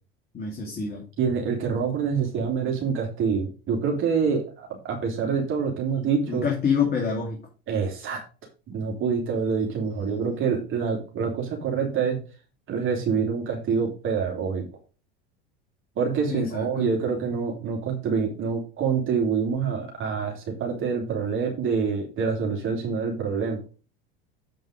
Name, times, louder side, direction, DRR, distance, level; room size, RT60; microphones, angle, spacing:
voice 1, 0.3-1.0 6.3-7.4 16.3-16.9, left 6 dB, 35° left, -1 dB, 2.7 m, -27 dB
voice 2, 1.2-6.4 7.7-8.2 8.7-12.2 12.7-14.7 16.0-23.6, right 6 dB, 45° right, 1 dB, 2.9 m, -26 dB
7.9 x 5.4 x 5.2 m, 0.34 s
hypercardioid pair, 85°, 29 cm